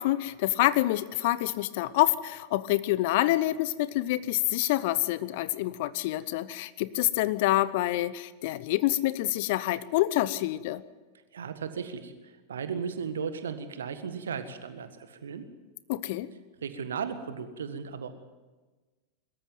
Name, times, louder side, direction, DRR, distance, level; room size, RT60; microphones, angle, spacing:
voice 1, 0.0-10.8 15.9-16.3, left 16 dB, 50° left, 17 dB, 0.8 m, -27 dB
voice 2, 11.3-15.5 16.6-18.1, right 6 dB, 65° right, 10 dB, 1.6 m, -36 dB
22.5 x 13.5 x 9.2 m, 1.3 s
figure-of-eight pair, 90°, 0 cm